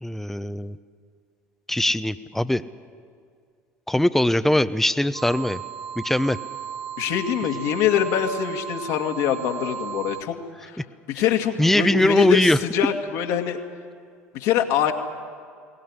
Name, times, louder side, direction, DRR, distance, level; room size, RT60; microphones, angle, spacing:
voice 1, 0.0-0.8 1.7-2.6 3.9-5.6 6.0-6.4 11.6-12.6, left 1 dB, 5° left, 12 dB, 0.8 m, -21 dB
sound 1, 5.1-10.2, right 9 dB, 55° right, 1.6 m, -35 dB
voice 2, 7.0-10.4 10.6-10.8 11.1-13.6 14.3-14.9, left 9 dB, 65° left, 3 dB, 2.2 m, -24 dB
23.0 x 18.5 x 9.9 m, 2.1 s
hypercardioid pair, 65°, 7 cm